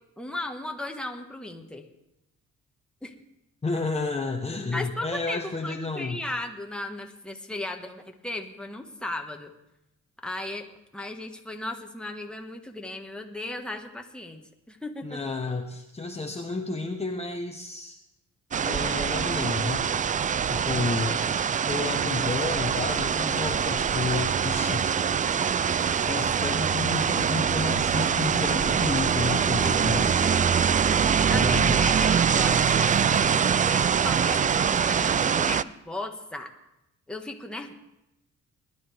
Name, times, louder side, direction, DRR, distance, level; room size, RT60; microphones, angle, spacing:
voice 1, 0.2-1.9 3.0-3.1 4.7-9.5 10.2-10.7 10.9-15.2 20.8-21.3 31.3-36.5 37.1-37.7, left 2 dB, 5° left, 3 dB, 1.5 m, -36 dB
voice 2, 3.6-6.2 15.0-18.0 18.6-19.9 20.5-21.1 21.7-24.9 26.1-30.3 31.3-31.9, left 3 dB, 20° left, 3 dB, 1.1 m, -31 dB
sound 1, 18.5-35.6, right 7 dB, 25° right, 0.3 m, -24 dB
20.0 x 11.0 x 3.5 m, 0.89 s
cardioid pair, 90°, 30 cm